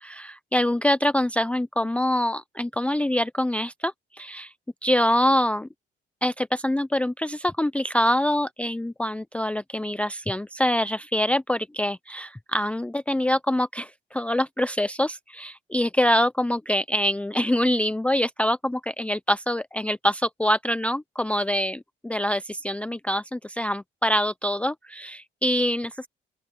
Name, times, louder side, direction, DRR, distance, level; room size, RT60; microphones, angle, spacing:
voice 1, 0.0-4.5 4.8-5.7 6.2-26.1, left 1 dB, 5° left, 0.5 m, -25 dB
open air
cardioid pair, 90°, 20 cm